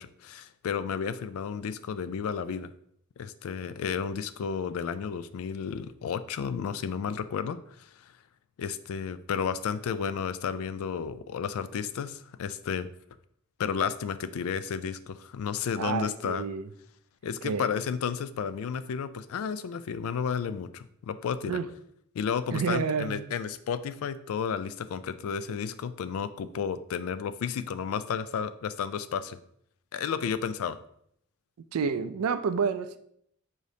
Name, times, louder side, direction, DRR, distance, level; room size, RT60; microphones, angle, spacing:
voice 1, 0.0-2.7 3.2-8.1 8.6-12.9 13.6-16.4 17.2-21.6 22.1-29.4 29.9-30.8, left 7 dB, 70° left, 14 dB, 0.3 m, -32 dB
voice 2, 15.8-16.7 17.4-17.8 21.5-21.7 22.5-23.2 31.7-33.0, right 5 dB, 85° right, 11 dB, 0.4 m, -29 dB
5.0 x 3.9 x 2.7 m, 0.69 s
head